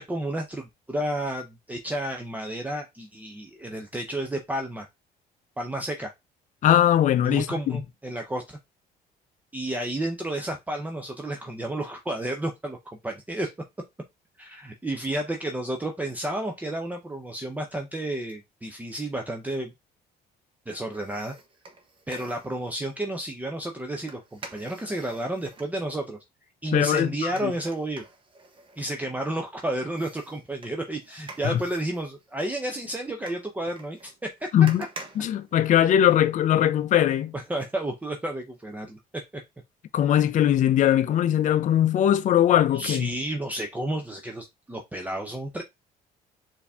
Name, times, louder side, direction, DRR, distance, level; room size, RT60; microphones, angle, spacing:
voice 1, 0.0-4.9 5.6-6.1 7.2-8.6 9.5-13.5 14.4-19.7 20.7-21.3 22.1-26.2 26.6-28.0 28.8-34.4 37.3-39.0 39.3-39.4 42.7-45.6, right 1 dB, 10° right, 0.6 m, -31 dB
voice 2, 6.6-7.8 26.7-27.5 31.4-31.6 34.5-34.8 35.2-37.3 39.9-43.1, left 11 dB, 50° left, 0.5 m, -21 dB
sound 1, 20.9-22.7 24.1-25.7 27.0-29.5 29.9-36.2 36.5-36.6, right 3 dB, 30° right, 1.0 m, -47 dB
4.5 x 2.7 x 3.5 m
cardioid pair, 110°, 17 cm